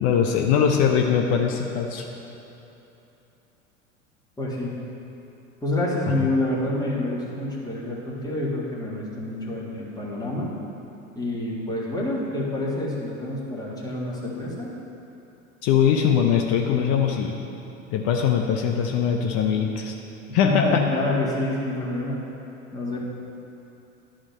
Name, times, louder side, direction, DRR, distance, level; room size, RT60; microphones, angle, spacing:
voice 1, 0.0-2.1 15.6-17.4 17.9-19.9 20.3-20.8, left 7 dB, 40° left, 2 dB, 0.7 m, -21 dB
voice 2, 4.4-4.7 5.6-10.5 11.1-14.7 20.4-22.2 22.7-23.0, left 2 dB, 10° left, -6 dB, 1.9 m, -27 dB
11.5 x 4.9 x 5.2 m, 3.0 s
figure-of-eight pair, 80°, 40 cm